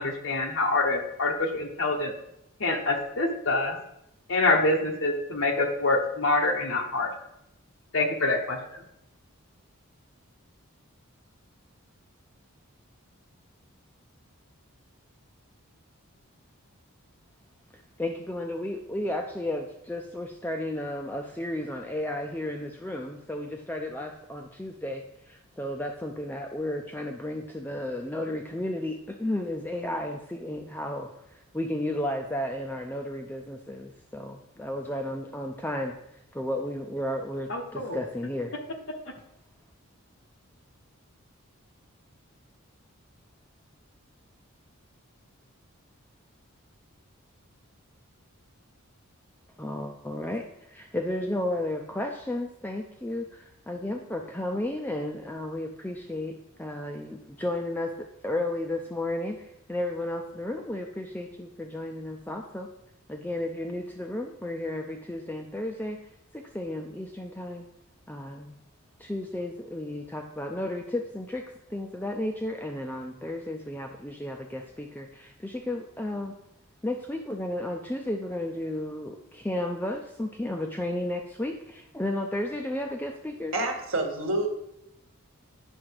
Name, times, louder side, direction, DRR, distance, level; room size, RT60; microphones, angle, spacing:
voice 1, 0.0-2.1 2.6-3.8 4.3-7.1 7.9-8.8 37.5-38.0 39.0-39.1, left 2 dB, 60° left, 3 dB, 1.3 m, -26 dB
voice 2, 18.0-35.9 36.3-38.5 49.6-62.7 63.1-66.0 66.3-67.6 68.1-68.5 69.0-71.4 71.7-76.3 76.8-83.6, left 1 dB, 10° left, 2 dB, 0.5 m, -33 dB
voice 3, 83.5-84.5, right 2 dB, 65° right, 3 dB, 1.4 m, -27 dB
8.9 x 6.1 x 4.7 m, 0.81 s
head